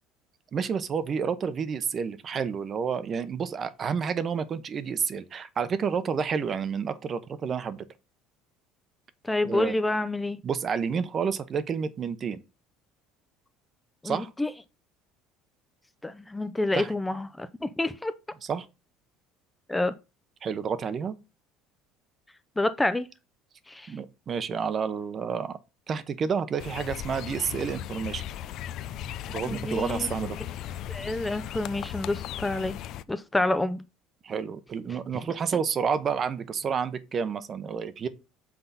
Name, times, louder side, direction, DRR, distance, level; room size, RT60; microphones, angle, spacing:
voice 1, 0.5-7.8 9.4-9.7 10.4-12.4 14.0-14.3 16.7-16.9 18.4-18.7 20.4-21.1 23.9-25.6 25.9-28.2 29.3-30.4 34.2-38.1, right 6 dB, 40° right, 0.8 m, -30 dB
voice 2, 9.2-10.4 14.0-14.5 16.0-18.1 19.7-19.9 22.6-23.1 23.7-23.9 29.5-30.1 30.9-32.8 33.1-33.8, left 2 dB, 10° left, 0.5 m, -28 dB
sound 1, 26.6-33.0, left 11 dB, 60° left, 0.4 m, -37 dB
5.9 x 3.9 x 5.6 m
supercardioid pair, 95°, 0 cm